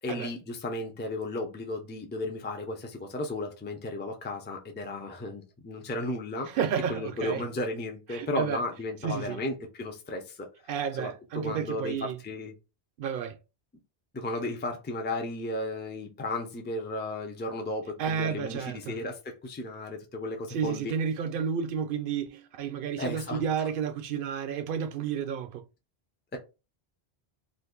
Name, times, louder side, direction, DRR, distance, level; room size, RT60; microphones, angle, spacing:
voice 1, 0.0-6.5 6.9-10.4 11.0-12.0 12.2-12.5 14.1-20.9 23.0-23.4 26.3-26.4, left 2 dB, 15° left, 0.4 m, -34 dB
voice 2, 6.5-7.4 8.1-8.6 9.0-9.4 10.7-12.2 13.0-13.4 18.0-19.0 20.5-25.6, right 7 dB, 65° right, 0.7 m, -31 dB
2.6 x 2.5 x 3.7 m
omnidirectional pair, 1.0 m